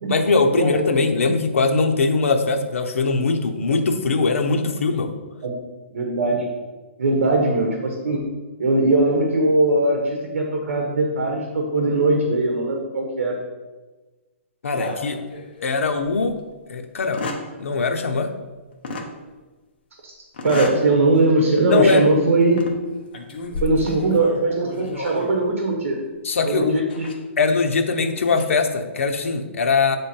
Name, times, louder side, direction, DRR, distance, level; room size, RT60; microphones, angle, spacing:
voice 1, 0.1-5.1 14.6-15.2 15.6-16.4 16.7-17.3 17.6-18.4 21.6-22.1 26.2-26.8 27.4-30.0, left 4 dB, 90° left, 5 dB, 0.8 m, -21 dB
voice 2, 5.9-6.5 7.0-8.2 8.6-13.4 20.0-20.1 20.4-22.6 23.6-26.0 26.4-27.1, right 2 dB, 60° right, 1 dB, 1.2 m, -20 dB
sound 1, 14.7-15.8 16.2-16.3 17.0-17.5 18.8-19.1 20.3-20.9 21.3-21.5 22.4-22.8 23.1-25.5 26.9-27.1 28.1-28.4, left 2 dB, 45° left, 0.9 m, -32 dB
8.2 x 3.4 x 4.4 m, 1.2 s
hypercardioid pair, 175°, 7 cm